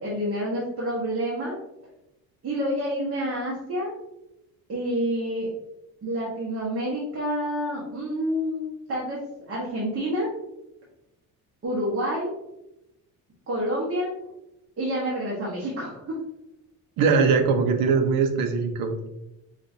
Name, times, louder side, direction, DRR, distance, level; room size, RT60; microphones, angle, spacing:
voice 1, 0.0-1.5 2.4-3.9 4.7-5.5 6.0-9.2 9.5-10.3 11.6-12.3 13.5-14.1 14.8-16.0, equal, 35° right, -6 dB, 1.1 m, -28 dB
voice 2, 17.0-19.1, right 5 dB, 65° right, 5 dB, 0.7 m, -21 dB
5.2 x 2.5 x 2.7 m, 0.89 s
cardioid pair, 150°, 36 cm